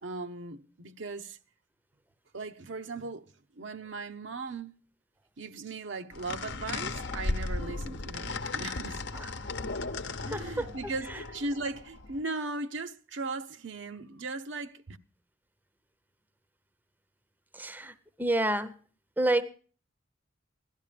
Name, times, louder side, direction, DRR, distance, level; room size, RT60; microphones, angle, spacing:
voice 1, 0.0-1.4 2.3-3.3 3.5-4.8 5.4-9.0 10.2-15.0, right 3 dB, 70° right, 0.9 m, -38 dB
sound 1, 6.1-12.2, left 3 dB, 60° left, 0.9 m, -36 dB
voice 2, 10.3-10.7 17.5-18.8 19.2-19.4, right 1 dB, 10° right, 0.7 m, -29 dB
16.5 x 12.0 x 5.0 m
head